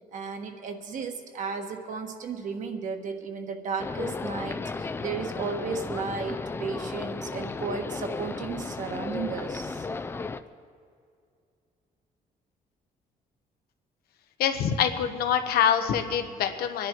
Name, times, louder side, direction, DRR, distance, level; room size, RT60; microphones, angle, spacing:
voice 1, 0.1-9.9, right 5 dB, 55° right, 5 dB, 1.4 m, -34 dB
sound 1, 3.8-10.4, left 4 dB, 15° left, 0.4 m, -34 dB
voice 2, 14.4-16.9, left 8 dB, 90° left, 7 dB, 1.1 m, -25 dB
25.0 x 10.5 x 4.5 m, 2.4 s
cardioid pair, 165°, 15 cm